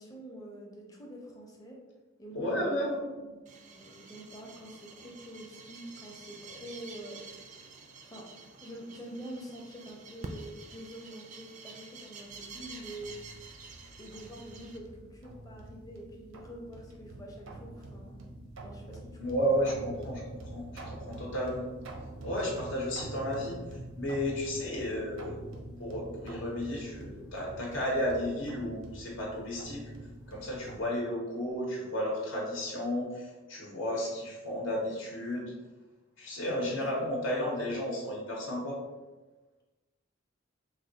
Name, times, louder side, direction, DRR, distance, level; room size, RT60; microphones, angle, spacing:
voice 1, 0.0-1.8 2.2-7.2 8.0-8.3 8.6-13.2 14.0-18.2 18.6-19.0 19.5-19.6 36.6-37.0, right 1 dB, 20° left, -1 dB, 0.6 m, -46 dB
voice 2, 2.3-3.1 19.2-21.6 22.2-23.6 23.9-25.4 25.8-29.8 30.3-35.5 36.2-38.8, equal, 75° left, -2 dB, 0.9 m, -33 dB
sound 1, 3.5-14.8, right 4 dB, 40° right, 0.3 m, -48 dB
sound 2, 12.3-30.8, right 1 dB, 85° right, 0.6 m, -46 dB
3.3 x 2.3 x 3.8 m, 1.2 s
head